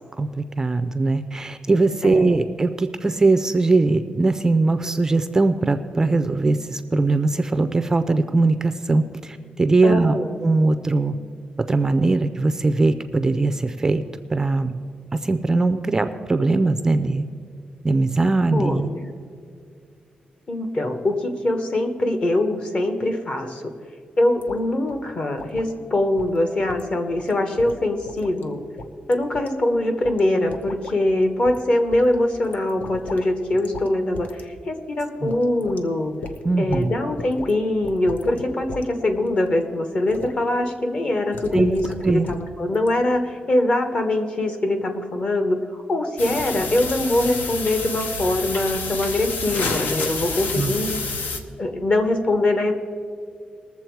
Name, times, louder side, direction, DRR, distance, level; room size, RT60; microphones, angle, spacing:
voice 1, 0.2-10.1 10.4-11.1 11.7-14.0 14.3-14.8 15.2-17.3 17.8-18.9 35.2-35.3 36.4-36.9 41.5-41.7 42.0-42.3 50.5-50.7, right 3 dB, 20° right, 10 dB, 0.4 m, -20 dB
voice 2, 2.0-2.4 9.8-10.3 18.5-19.1 20.5-23.7 24.2-28.6 29.1-36.1 36.6-51.0 51.6-52.7, left 1 dB, 35° left, 6 dB, 1.0 m, -23 dB
sound 1, 24.4-24.6 24.9-25.0 25.4-25.7 26.2-26.4 26.7-26.9 27.2-27.3 27.6-28.4 28.8-29.5 30.0-30.2 30.5-31.0 31.5-31.6 31.9-33.3 33.5-33.9 34.1-34.4 34.8-34.9 35.3-35.8 36.2-36.9 37.2-37.5 37.8-38.9 39.2-39.5 40.1-40.3 41.3-42.5 42.7-42.9, left 3 dB, 60° left, 0.8 m, -37 dB
sound 2, 46.2-51.4, left 3 dB, 90° left, 1.0 m, -29 dB
20.0 x 7.1 x 4.6 m, 2.1 s
wide cardioid pair, 175°, 3 cm